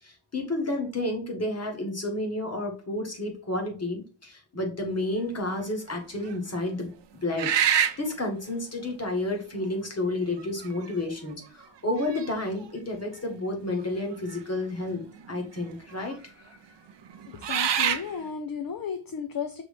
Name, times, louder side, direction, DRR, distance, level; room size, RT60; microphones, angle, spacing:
voice 1, 0.0-6.9 7.2-15.0 15.3-16.6, left 2 dB, 30° left, 2 dB, 1.5 m, -31 dB
sound 1, 5.2-5.6 6.3-6.4 7.3-8.1 9.3-9.4 10.4-10.9 11.3-11.4 12.0-12.7 14.3-14.4 14.7-15.3 16.0-16.1 17.1-18.1, right 8 dB, 60° right, 0.7 m, -26 dB
voice 2, 17.5-19.6, left 7 dB, 45° left, 7 dB, 0.6 m, -34 dB
6.1 x 3.1 x 5.0 m, 0.38 s
wide cardioid pair, 175°, 48 cm